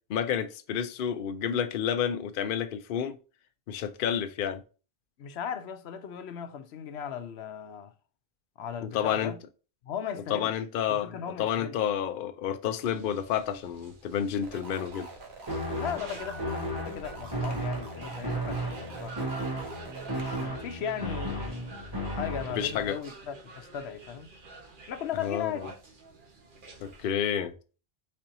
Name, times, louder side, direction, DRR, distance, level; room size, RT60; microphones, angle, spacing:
voice 1, 0.1-3.2 3.7-4.6 8.8-9.3 10.3-15.1 22.6-23.0 25.2-25.5 26.8-27.5, left 9 dB, 60° left, 0.7 m, -30 dB
voice 2, 5.2-7.9 8.6-9.4 9.8-10.5 10.9-11.8 15.7-19.3 20.1-24.3 24.9-25.8, left 8 dB, 90° left, 0.9 m, -37 dB
sound 1, 12.8-27.1, right 3 dB, 55° right, 1.2 m, -48 dB
sound 2, 14.4-20.4, right 3 dB, 80° right, 1.5 m, -45 dB
sound 3, 15.5-22.9, right 1 dB, 20° right, 1.9 m, -34 dB
4.3 x 4.3 x 2.6 m
omnidirectional pair, 1.1 m